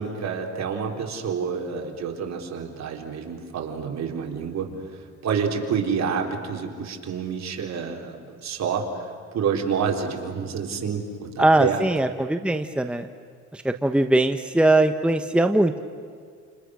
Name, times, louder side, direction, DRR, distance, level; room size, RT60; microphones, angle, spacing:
voice 1, 0.0-4.7 5.2-8.9 9.3-11.8, right 6 dB, 60° right, 2 dB, 3.9 m, -28 dB
voice 2, 11.4-13.1 13.5-15.8, right 1 dB, 5° right, 7 dB, 1.3 m, -21 dB
30.0 x 29.0 x 6.4 m, 2.1 s
cardioid pair, 90°, 30 cm